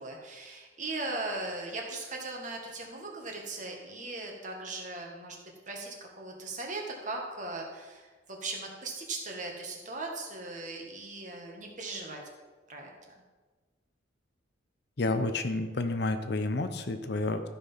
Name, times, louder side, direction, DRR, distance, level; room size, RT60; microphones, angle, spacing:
voice 1, 0.0-5.4 5.7-12.2 12.7-13.1, right 2 dB, 40° right, 0 dB, 1.8 m, -38 dB
voice 2, 15.0-17.5, left 2 dB, 55° left, 8 dB, 0.7 m, -30 dB
13.5 x 5.9 x 5.7 m, 1.3 s
head